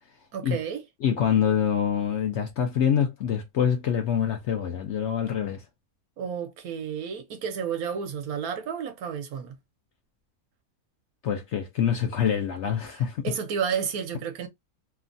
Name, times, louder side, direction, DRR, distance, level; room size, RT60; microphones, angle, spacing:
voice 1, 0.3-0.8 6.2-9.6 13.0-14.5, right 7 dB, 75° right, 1.2 m, -31 dB
voice 2, 1.0-5.6 11.2-13.3, left 8 dB, 65° left, 0.7 m, -25 dB
3.1 x 2.2 x 2.5 m
omnidirectional pair, 1.6 m